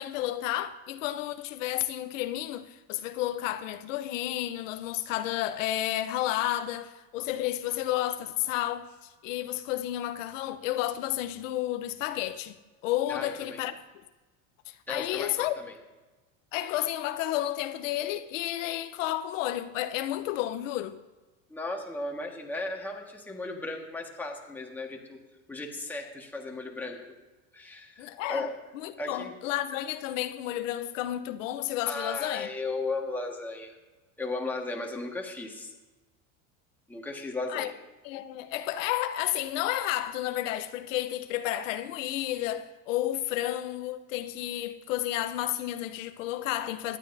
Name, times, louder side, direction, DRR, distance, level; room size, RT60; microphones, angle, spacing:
voice 1, 0.0-12.6 12.8-13.7 14.7-15.5 16.5-21.0 28.0-28.5 28.7-32.5 37.5-37.7 38.0-47.0, left 13 dB, 85° left, 0.8 m, -31 dB
voice 2, 13.1-13.6 14.9-15.7 21.5-25.2 25.5-27.0 27.5-28.5 29.0-29.3 31.9-33.8 34.2-35.7 36.9-37.7, left 2 dB, 5° left, 1.6 m, -36 dB
18.0 x 11.0 x 2.7 m
supercardioid pair, 140°, 38 cm